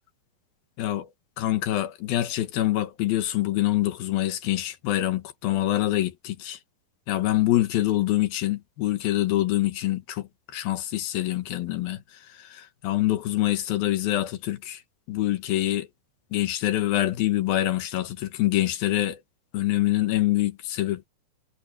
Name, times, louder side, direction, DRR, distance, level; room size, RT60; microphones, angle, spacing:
voice 1, 0.8-1.1 1.4-6.6 7.1-14.8 15.1-15.9 16.3-19.2 19.5-21.1, left 14 dB, 80° left, 3.2 m, -25 dB
omnidirectional pair, 4.2 m